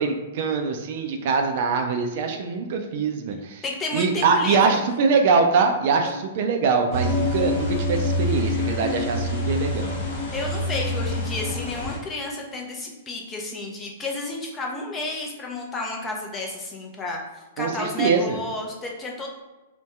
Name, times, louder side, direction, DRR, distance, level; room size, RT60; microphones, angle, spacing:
voice 1, 0.0-3.6 3.9-10.0 17.6-18.4, right 5 dB, 55° right, 4 dB, 0.4 m, -23 dB
voice 2, 3.6-4.8 10.3-19.3, left 2 dB, 20° left, 0 dB, 0.6 m, -31 dB
sound 1, 6.9-12.0, left 2 dB, 55° left, 1.1 m, -26 dB
2.7 x 2.2 x 3.4 m, 1.1 s
hypercardioid pair, 115°, 0 cm